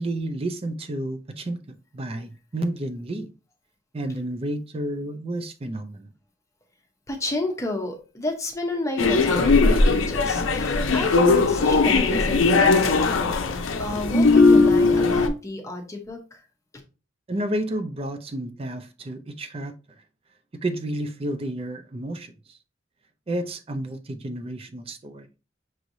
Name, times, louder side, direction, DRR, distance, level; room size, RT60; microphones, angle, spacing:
voice 1, 0.0-3.3 3.9-6.1 17.3-19.7 20.6-22.6 23.3-25.3, right 1 dB, 30° right, 0.5 m, -31 dB
voice 2, 7.1-16.2, left 2 dB, 15° left, 0.8 m, -31 dB
sound 1, 9.0-15.3, left 3 dB, 75° left, 0.6 m, -19 dB
6.0 x 3.2 x 2.6 m
head